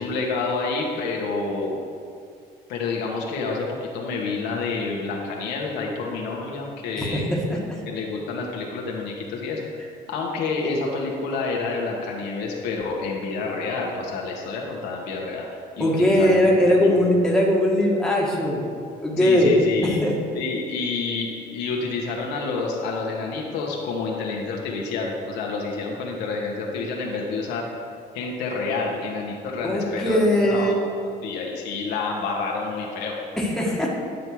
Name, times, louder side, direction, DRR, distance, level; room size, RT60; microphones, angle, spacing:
voice 1, 0.0-1.8 2.7-7.2 7.9-9.7 10.1-16.9 19.2-20.0 20.3-27.7 28.1-33.2, left 4 dB, 90° left, -1 dB, 1.5 m, -28 dB
voice 2, 7.0-7.8 15.8-18.7 19.0-19.6 19.8-20.1 29.6-30.8 33.4-33.9, left 1 dB, 5° left, -3 dB, 1.7 m, -20 dB
10.0 x 5.4 x 4.7 m, 2.3 s
cardioid pair, 110°, 17 cm